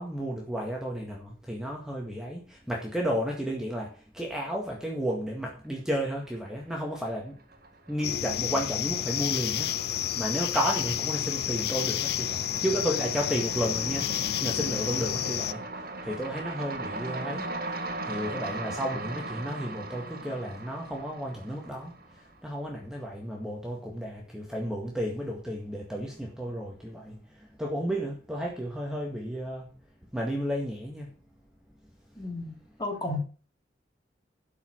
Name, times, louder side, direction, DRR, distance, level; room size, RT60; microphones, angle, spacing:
voice 1, 0.0-7.4 7.9-29.7 30.1-31.1, equal, 5° right, 1.9 m, -33 dB
sound 1, 6.3-6.9 7.2-22.3, right 2 dB, 55° right, 1.8 m, -39 dB
sound 2, 8.0-15.5, left 11 dB, 60° left, 0.4 m, -30 dB
voice 2, 32.2-33.2, left 2 dB, 25° left, 2.9 m, -34 dB
12.0 x 5.7 x 6.3 m
head